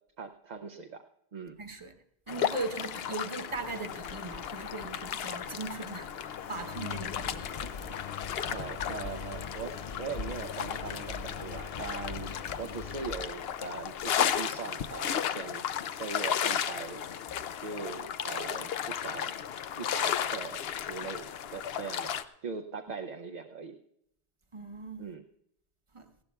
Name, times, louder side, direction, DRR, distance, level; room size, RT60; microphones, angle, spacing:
voice 1, 0.2-1.6 8.4-12.3 12.6-17.1 17.6-19.4 19.8-23.8 25.0-25.2, right 5 dB, 50° right, 5 dB, 0.7 m, -41 dB
voice 2, 1.6-2.0 2.3-7.6 24.5-25.1 25.9-26.1, right 3 dB, 30° right, 5 dB, 1.0 m, -39 dB
sound 1, 2.3-22.2, left 9 dB, 75° left, 0.8 m, -35 dB
Engine, 3.5-14.4, left 5 dB, 45° left, 0.6 m, -43 dB
19.0 x 16.5 x 2.3 m, 0.80 s
omnidirectional pair, 1.0 m